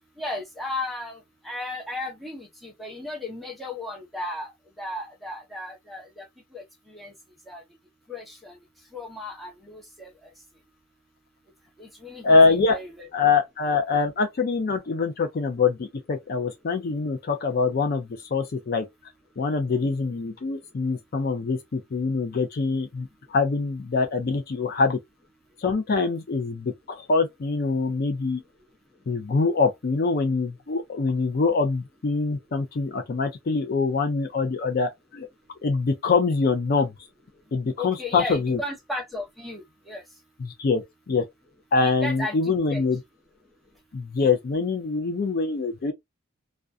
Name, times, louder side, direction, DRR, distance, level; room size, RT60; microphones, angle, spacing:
voice 1, 0.2-1.2 1.4-4.5 4.8-6.3 6.5-7.1 7.5-7.6 8.1-8.5 8.9-10.1 11.8-13.1 37.8-40.0 41.8-42.8, left 2 dB, ahead, 0.7 m, -35 dB
voice 2, 12.2-12.8 13.1-18.9 19.4-25.0 25.6-28.4 29.1-35.3 35.6-36.9 37.5-38.6 40.4-41.2 41.7-43.0 43.9-45.9, left 4 dB, 45° left, 0.4 m, -24 dB
2.4 x 2.2 x 2.5 m
head